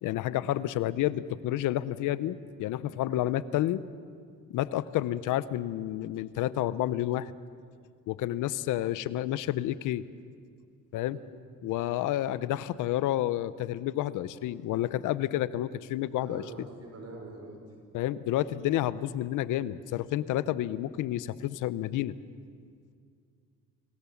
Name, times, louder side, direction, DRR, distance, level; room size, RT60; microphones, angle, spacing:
voice 1, 0.0-3.8 4.5-7.3 8.1-10.0 10.9-11.2 11.6-16.4 17.9-22.1, left 13 dB, 90° left, 17 dB, 0.7 m, -30 dB
voice 2, 16.1-17.6, right 2 dB, 55° right, 2 dB, 5.4 m, -45 dB
26.0 x 17.5 x 7.2 m, 2.2 s
cardioid pair, 90°, 30 cm